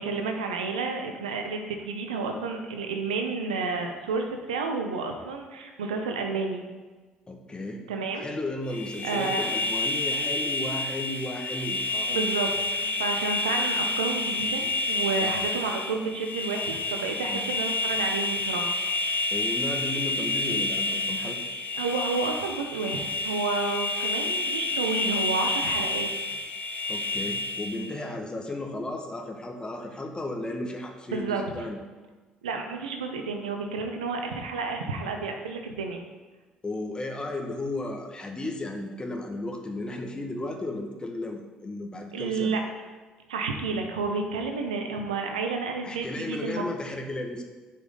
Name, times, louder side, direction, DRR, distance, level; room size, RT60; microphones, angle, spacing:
voice 1, 0.0-6.6 7.9-8.3 9.0-9.4 12.1-18.7 21.8-26.1 31.1-31.7 32.4-36.0 42.1-42.6 43.3-46.7, right 4 dB, 85° right, 4 dB, 0.8 m, -30 dB
voice 2, 7.3-7.8 8.1-12.2 15.2-15.3 17.3-17.4 19.3-21.4 26.9-31.8 36.6-42.5 45.8-47.4, left 2 dB, 25° left, 2 dB, 1.6 m, -34 dB
sound 1, 8.7-27.9, left 2 dB, 40° left, 1.1 m, -29 dB
10.5 x 5.5 x 3.8 m, 1.3 s
hypercardioid pair, 55°, 4 cm